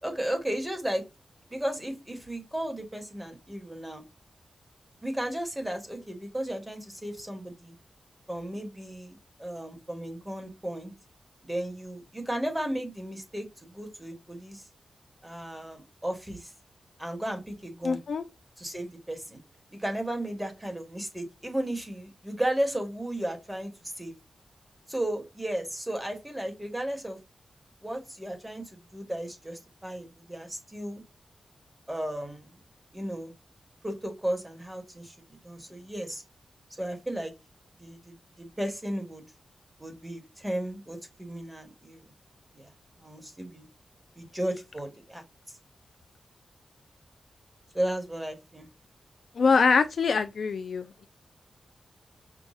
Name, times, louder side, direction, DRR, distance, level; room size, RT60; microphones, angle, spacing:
voice 1, 0.0-1.0 1.5-4.0 5.0-7.7 8.3-10.9 11.4-14.6 15.2-16.5 17.0-18.0 18.6-19.4 19.7-24.1 24.9-27.2 27.8-31.0 31.9-32.5 32.9-33.3 33.8-36.2 36.8-37.3 37.8-39.3 39.8-42.1 42.5-42.7 43.0-43.7 44.2-45.2 47.7-48.7, right 1 dB, 10° right, 1.4 m, -34 dB
voice 2, 17.8-18.2 49.4-51.1, left 5 dB, 70° left, 0.3 m, -24 dB
6.1 x 2.3 x 2.5 m
wide cardioid pair, 95°, 0 cm